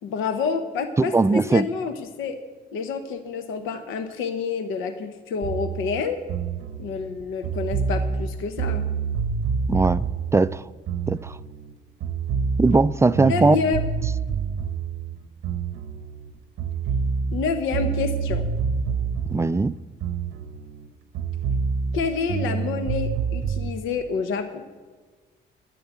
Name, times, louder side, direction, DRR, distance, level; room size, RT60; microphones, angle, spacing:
voice 1, 0.0-2.4 2.7-6.2 6.8-8.9 13.3-13.8 17.3-18.5 21.9-24.6, left 5 dB, 90° left, 0.9 m, -28 dB
voice 2, 1.0-1.7 9.7-10.6 11.1-11.4 12.6-13.6 19.3-19.8, right 3 dB, 15° right, 0.3 m, -20 dB
sound 1, 5.4-11.7 12.0-16.3 16.6-20.9 21.1-23.7, right 5 dB, 85° right, 0.8 m, -27 dB
11.0 x 9.3 x 8.2 m
cardioid pair, 90°, 20 cm